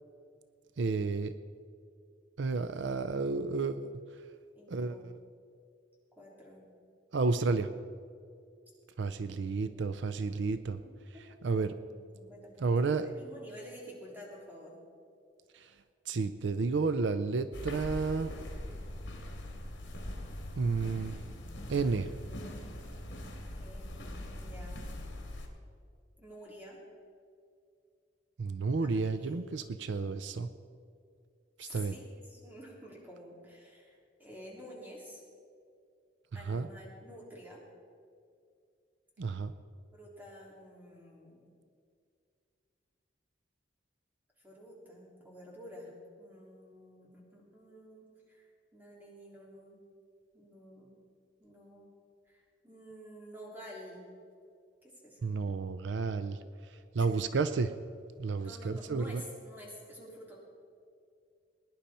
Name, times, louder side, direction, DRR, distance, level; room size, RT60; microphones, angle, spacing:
voice 1, 0.8-1.3 2.4-3.9 4.7-5.1 7.1-7.8 9.0-10.8 11.4-11.7 12.6-13.1 15.5-15.7 16.1-18.3 20.6-21.2 21.7-22.1 28.4-30.5 31.6-32.0 36.5-36.7 39.2-39.5 55.2-56.4 56.7-57.7 58.2-59.2, right 4 dB, 75° right, 11 dB, 0.5 m, -31 dB
voice 2, 4.5-5.1 6.2-6.6 9.5-10.0 10.8-11.3 11.9-12.7 13.0-14.8 23.6-24.9 26.2-26.8 28.8-29.7 31.6-35.2 36.3-37.6 39.9-41.4 44.4-45.9 46.2-49.8 50.3-51.0 51.4-51.9 52.2-54.0 55.0-55.3 57.0-57.1 58.4-60.4, equal, 10° right, -4 dB, 3.3 m, -50 dB
sound 1, 17.5-25.5, left 1 dB, 80° left, 2.3 m, -42 dB
20.5 x 10.5 x 4.3 m, 2.3 s
head